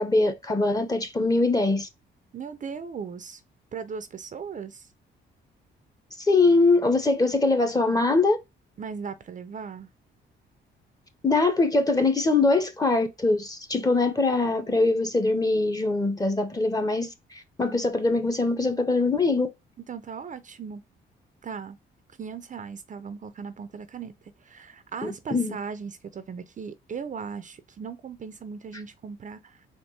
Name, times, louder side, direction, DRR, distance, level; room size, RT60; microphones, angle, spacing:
voice 1, 0.0-1.9 6.2-8.4 11.2-19.5 25.0-25.6, left 3 dB, 20° left, 0.9 m, -23 dB
voice 2, 2.3-3.4 3.7-4.9 8.8-9.9 19.9-20.8 21.4-21.8 22.2-24.1 24.4-29.7, right 6 dB, 40° right, 0.5 m, -38 dB
4.4 x 3.0 x 3.2 m
cardioid pair, 90°, 20 cm